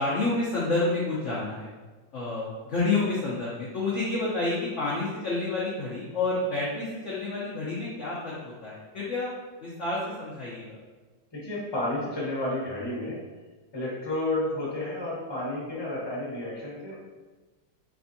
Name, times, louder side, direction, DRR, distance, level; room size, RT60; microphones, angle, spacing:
voice 1, 0.0-1.7 2.1-9.3 9.6-10.8, left 3 dB, 60° left, -8 dB, 0.8 m, -29 dB
voice 2, 11.3-13.2 13.7-17.0, left 1 dB, 20° left, -7 dB, 0.7 m, -31 dB
3.5 x 3.3 x 2.6 m, 1.3 s
omnidirectional pair, 2.0 m